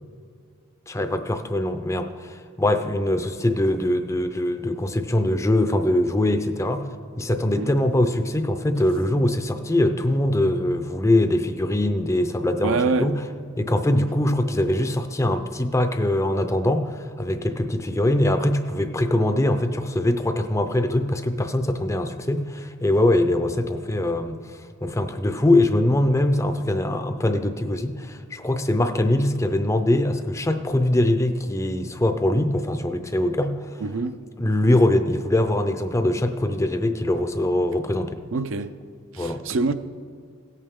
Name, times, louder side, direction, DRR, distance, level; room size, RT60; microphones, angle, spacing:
voice 1, 0.9-6.9 7.2-13.2 13.6-24.4 24.8-33.6 34.4-38.2 39.2-39.4, left 1 dB, 15° left, 0.5 m, -22 dB
voice 2, 12.6-13.1 33.8-34.2 38.3-38.7 39.1-39.7, right 3 dB, 65° right, 0.5 m, -25 dB
17.0 x 8.5 x 3.6 m
head